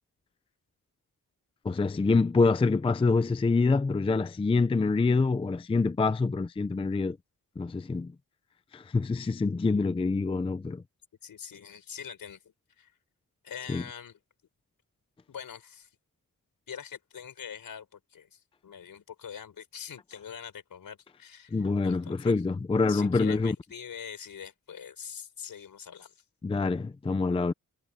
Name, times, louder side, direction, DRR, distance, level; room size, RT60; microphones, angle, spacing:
voice 1, 1.6-7.2 7.6-8.1 8.7-10.8 13.7-13.8 21.5-23.6 26.4-27.5, left 3 dB, 15° left, 0.5 m, -26 dB
voice 2, 11.2-12.9 13.4-14.2 15.3-15.9 16.7-22.4 22.9-26.2, left 7 dB, 70° left, 4.5 m, -44 dB
wide cardioid pair, 145°, 36 cm